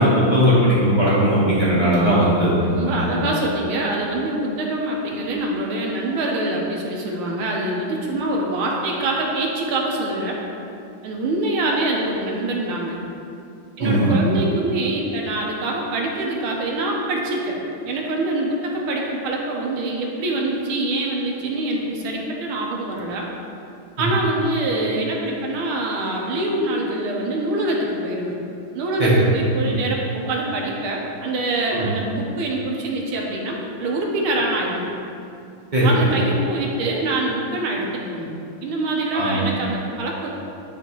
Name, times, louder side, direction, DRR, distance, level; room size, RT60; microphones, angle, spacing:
voice 1, 0.0-2.5 2.9-3.1 13.8-14.1 29.0-29.2 29.6-29.7 31.7-31.9 35.7-35.9 39.1-39.4, equal, 35° right, -9 dB, 0.8 m, -18 dB
voice 2, 2.6-10.4 11.0-13.0 13.8-17.6 17.8-23.3 24.0-28.4 28.7-34.9 35.8-40.3, right 2 dB, 75° right, -1 dB, 1.6 m, -25 dB
10.0 x 3.4 x 3.0 m, 2.6 s
omnidirectional pair, 2.3 m